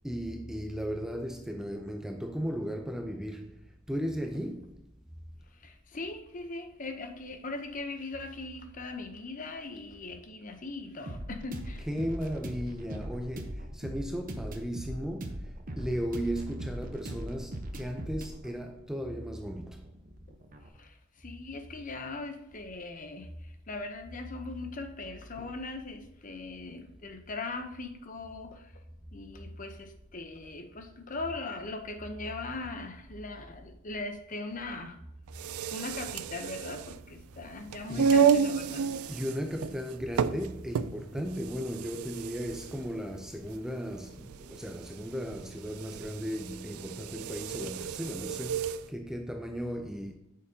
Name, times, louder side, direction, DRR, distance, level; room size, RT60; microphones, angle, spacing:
voice 1, 0.0-3.6 3.9-4.8 11.8-19.8 25.4-25.6 37.9-38.3 39.1-50.2, equal, ahead, 0.5 m, -36 dB
voice 2, 5.6-11.9 20.8-23.3 23.7-28.7 29.1-35.0 35.7-38.9, left 3 dB, 35° left, 0.7 m, -40 dB
sound 1, 11.1-20.7, right 1 dB, 40° right, 0.8 m, -40 dB
sound 2, 35.3-48.9, right 7 dB, 85° right, 0.4 m, -31 dB
8.8 x 6.6 x 2.8 m
head